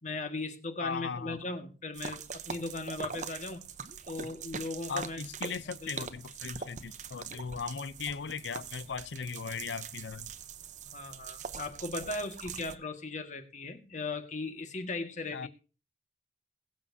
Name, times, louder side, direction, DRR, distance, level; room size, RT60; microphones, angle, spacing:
voice 1, 0.0-3.7 4.1-5.2 5.8-6.1 10.9-15.5, left 3 dB, 45° left, 1.7 m, -38 dB
voice 2, 0.8-1.4 4.9-10.3 15.3-15.5, left 5 dB, 85° left, 0.6 m, -38 dB
sound 1, 1.9-12.8, right 6 dB, 45° right, 0.8 m, -43 dB
21.5 x 7.3 x 2.7 m
head